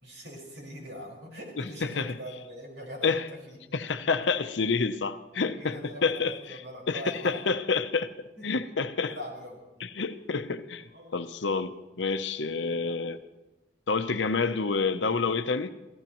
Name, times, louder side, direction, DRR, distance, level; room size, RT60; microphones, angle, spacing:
voice 1, 0.0-3.8 5.5-7.4 8.4-8.5 9.0-9.9 10.9-11.2 12.8-13.0, equal, 70° right, -1 dB, 5.2 m, -42 dB
voice 2, 1.6-2.2 3.0-3.3 3.7-6.6 6.9-9.1 9.8-10.8 11.1-13.2 13.9-15.7, left 4 dB, 80° left, 10 dB, 0.8 m, -28 dB
28.0 x 17.0 x 3.1 m, 1.1 s
head